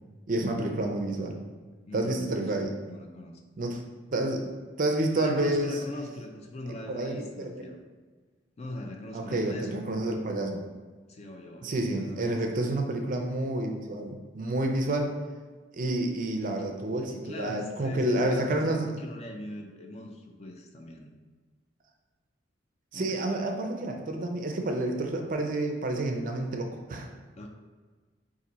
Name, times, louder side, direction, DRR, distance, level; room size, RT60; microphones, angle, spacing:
voice 1, 0.3-1.4 1.9-2.7 3.6-3.8 4.1-4.5 4.8-5.8 6.7-7.6 9.1-10.7 11.6-15.2 15.7-18.9 22.9-27.1, right 1 dB, 45° right, 3 dB, 0.4 m, -29 dB
voice 2, 1.9-3.4 5.2-7.8 8.6-9.7 11.1-12.4 17.2-21.1 22.9-23.3 27.4-27.5, left 1 dB, 35° left, 2 dB, 0.4 m, -41 dB
4.2 x 2.5 x 3.9 m, 1.4 s
head